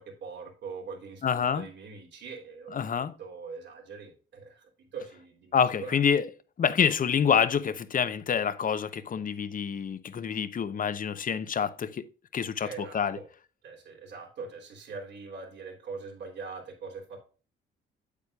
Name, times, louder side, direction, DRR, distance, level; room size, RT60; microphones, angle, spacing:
voice 1, 0.0-2.9 3.2-5.6 5.8-6.0 12.6-13.3 13.6-17.2, right 4 dB, 60° right, 3.3 m, -42 dB
voice 2, 1.2-1.7 2.7-3.1 5.5-6.2 6.6-12.0 12.3-13.2, left 7 dB, 45° left, 0.8 m, -27 dB
8.3 x 8.2 x 2.4 m
cardioid pair, 90°, 20 cm